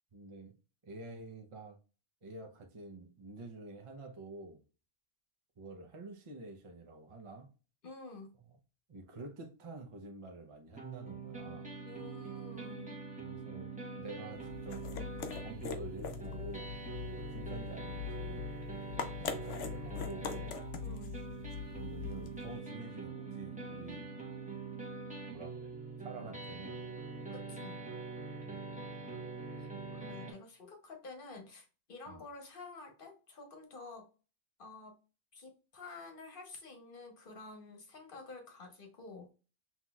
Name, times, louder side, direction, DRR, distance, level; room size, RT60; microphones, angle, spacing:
voice 1, 0.1-0.5 0.8-1.8 2.2-4.6 5.6-7.5 8.9-11.7 13.2-13.7 14.0-14.9 15.4-18.5 19.2-20.6 21.7-24.1 25.2-25.7 26.0-26.8 28.4-28.5 32.1-32.2, right 2 dB, 35° right, 0.6 m, -48 dB
voice 2, 7.8-8.4 11.8-13.0 20.8-21.1 27.3-27.8 29.6-34.1 34.6-35.0 35.3-39.3, left 3 dB, 50° left, 1.1 m, -50 dB
sound 1, 10.8-30.3, right 4 dB, 5° right, 1.0 m, -44 dB
sound 2, 14.3-22.6, left 8 dB, 90° left, 1.0 m, -42 dB
5.8 x 2.9 x 2.3 m
omnidirectional pair, 1.2 m